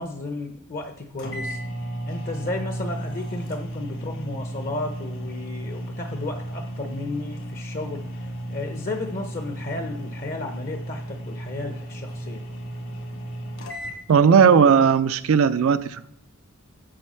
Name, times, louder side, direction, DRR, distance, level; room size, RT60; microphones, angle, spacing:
voice 1, 0.0-1.6 2.1-8.0 8.5-12.4, left 2 dB, 40° left, 5 dB, 0.7 m, -33 dB
sound 1, 0.8-0.9 1.2-14.0, right 1 dB, 60° left, 1.5 m, -34 dB
voice 2, 14.1-16.1, right 6 dB, 70° right, 12 dB, 0.4 m, -17 dB
7.6 x 4.5 x 5.5 m, 0.81 s
head